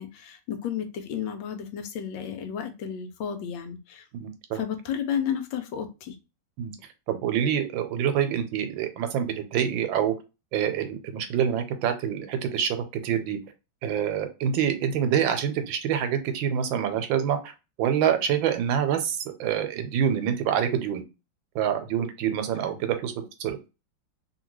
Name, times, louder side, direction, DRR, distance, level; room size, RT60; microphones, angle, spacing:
voice 1, 0.0-4.0 4.5-6.2, left 8 dB, 80° left, 1.3 m, -32 dB
voice 2, 4.1-4.6 6.6-6.7 7.1-10.1 10.5-13.4 13.8-17.5 17.8-21.0 21.5-23.1 23.4-23.6, right 9 dB, 85° right, 1.4 m, -26 dB
2.8 x 2.8 x 3.0 m
omnidirectional pair, 2.1 m